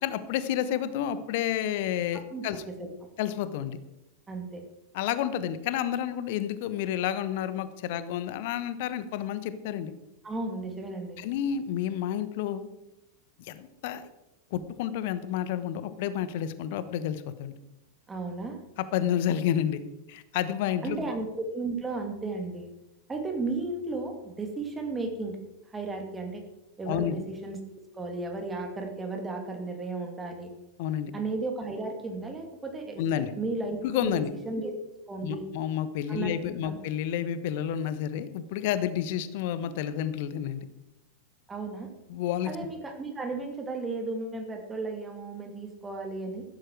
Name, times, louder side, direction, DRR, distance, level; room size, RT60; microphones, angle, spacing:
voice 1, 0.0-2.6 3.2-3.8 4.9-9.9 11.2-12.7 13.5-14.1 14.5-17.5 18.9-19.8 20.1-21.1 26.9-27.2 30.8-31.1 33.0-33.3 33.8-34.3 35.2-40.6 42.1-42.5, left 10 dB, 50° left, 13 dB, 1.2 m, -30 dB
voice 2, 2.3-2.9 4.3-4.6 10.2-11.2 18.1-18.6 20.8-22.7 23.1-25.4 25.7-26.4 26.8-27.6 27.9-30.5 31.1-33.0 33.4-34.7 35.1-35.4 36.1-36.8 41.5-41.9 42.4-46.4, right 3 dB, 15° right, 4 dB, 2.6 m, -34 dB
15.0 x 13.0 x 4.8 m, 0.92 s
figure-of-eight pair, 90°, 0 cm